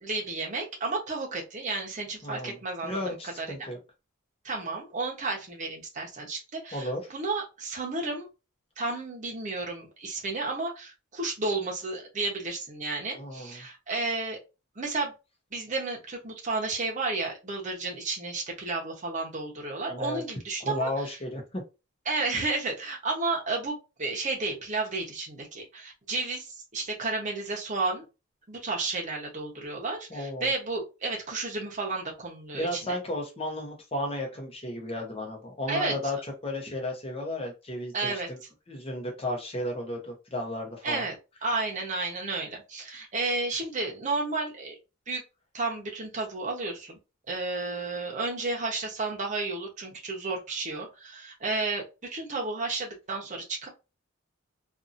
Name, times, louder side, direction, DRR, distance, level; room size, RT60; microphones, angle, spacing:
voice 1, 0.0-3.5 4.4-8.3 8.8-14.4 14.8-15.1 15.5-21.2 22.1-28.0 28.5-33.0 35.7-36.0 37.9-38.3 40.8-41.1 41.4-44.7 45.1-45.2 45.5-47.0 47.3-51.8 52.1-53.7, right 3 dB, 35° right, 0 dB, 0.9 m, -32 dB
voice 2, 2.2-3.8 6.7-7.0 13.2-13.6 19.9-20.2 20.6-21.6 30.1-30.5 32.5-36.2 36.4-38.4 38.7-41.0, left 1 dB, 30° left, 1 dB, 0.9 m, -34 dB
2.7 x 2.6 x 2.5 m, 0.28 s
head